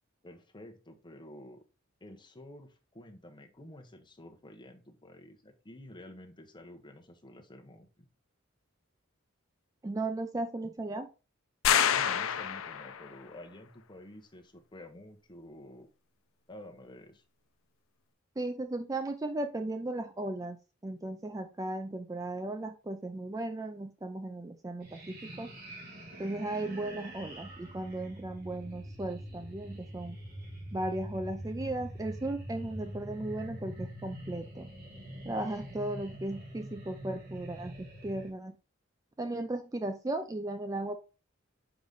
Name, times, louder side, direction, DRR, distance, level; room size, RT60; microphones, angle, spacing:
voice 1, 0.2-1.6 2.0-7.9 11.9-15.9 16.5-17.2, left 1 dB, 25° left, 3 dB, 1.0 m, -50 dB
voice 2, 9.8-11.1 18.4-20.6 20.8-25.5 26.2-30.2 30.7-34.7 35.2-38.6 39.2-41.0, right 2 dB, 15° right, 8 dB, 0.4 m, -36 dB
sound 1, 11.6-13.1, left 9 dB, 80° left, 0.5 m, -27 dB
sound 2, 24.8-38.3, equal, 45° right, 2.7 m, -44 dB
5.2 x 4.9 x 3.9 m, 0.32 s
head